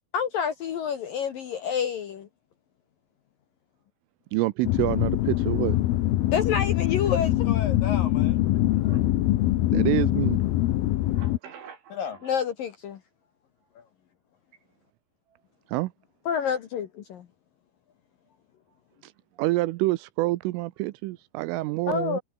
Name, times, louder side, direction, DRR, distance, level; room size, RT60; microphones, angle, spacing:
voice 1, 0.1-2.3 6.3-8.4 12.0-13.0 13.8-13.9 16.3-17.0 21.9-22.2, left 7 dB, 60° left, 2.4 m, -29 dB
voice 2, 4.3-5.8 9.7-10.4 15.7-15.9 19.4-22.2, right 19 dB, 80° right, 3.3 m, -27 dB
sound 1, 4.6-11.4, left 15 dB, 85° left, 2.2 m, -23 dB
voice 3, 8.6-9.1 11.0-12.4 13.6-13.7 14.5-14.6 15.3-15.4 18.7-19.0 19.3-19.4, right 7 dB, 65° right, 6.6 m, -48 dB
omnidirectional pair, 5.8 m